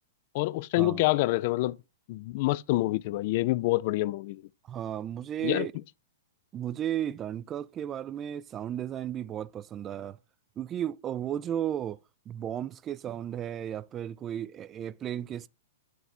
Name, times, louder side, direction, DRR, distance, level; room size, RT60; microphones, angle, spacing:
voice 1, 0.3-1.8 2.1-4.4 5.4-5.7, left 19 dB, 50° left, 0.3 m, -27 dB
voice 2, 4.7-5.7 6.5-10.2 10.6-12.0 12.3-15.5, right 10 dB, 25° right, 0.4 m, -34 dB
9.3 x 3.3 x 4.2 m
hypercardioid pair, 135°, 0 cm